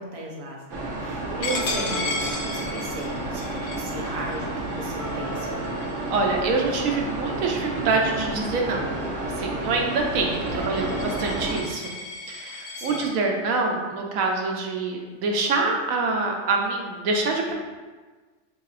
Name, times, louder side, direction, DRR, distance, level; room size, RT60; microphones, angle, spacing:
voice 1, 0.0-5.6 10.5-11.0 12.7-13.0, right 1 dB, 40° right, -2 dB, 0.5 m, -37 dB
sound 1, 0.7-11.6, right 2 dB, 65° right, 0.9 m, -31 dB
Coin (dropping), 1.4-6.8 7.3-7.6 7.9-13.1, left 3 dB, 60° left, 0.8 m, -35 dB
sound 2, 1.5-7.3, equal, 80° left, 1.1 m, -40 dB
voice 2, 6.1-8.9 9.2-11.9 12.3-17.5, right 3 dB, 90° right, 1 dB, 1.1 m, -25 dB
5.6 x 2.7 x 2.4 m, 1.4 s
omnidirectional pair, 1.4 m